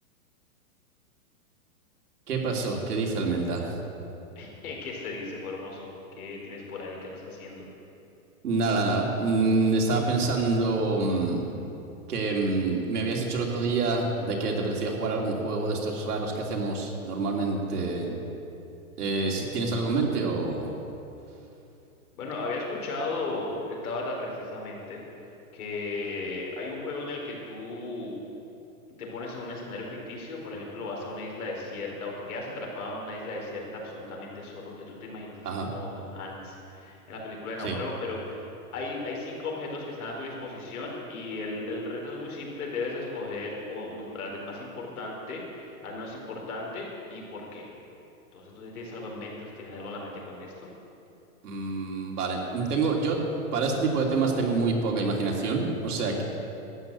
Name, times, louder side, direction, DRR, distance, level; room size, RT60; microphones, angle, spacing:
voice 1, 2.3-3.8 8.4-11.4 12.1-18.2 19.0-20.7 35.4-35.7 37.6-37.8 51.4-53.2 53.5-56.2, right 3 dB, 85° right, -1 dB, 3.1 m, -27 dB
voice 2, 4.4-7.7 22.2-25.0 25.5-28.2 29.0-38.5 38.7-47.7 48.3-50.7, left 2 dB, 70° left, -1 dB, 4.3 m, -36 dB
13.0 x 9.5 x 8.2 m, 2.8 s
hypercardioid pair, 175°, 45 cm